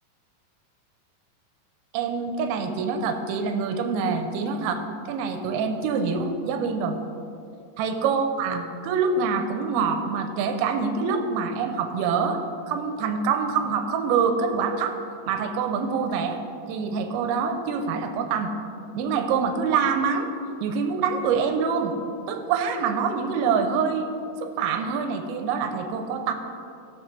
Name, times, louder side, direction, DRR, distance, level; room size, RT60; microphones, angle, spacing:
voice 1, 1.9-7.0 7.8-12.4 12.7-15.0 15.3-16.4 16.7-18.5 18.9-20.3 20.6-21.9 22.3-24.1 24.4-26.3, right 5 dB, 85° right, 6 dB, 3.0 m, -25 dB
20.0 x 6.6 x 3.3 m, 2.6 s
omnidirectional pair, 5.2 m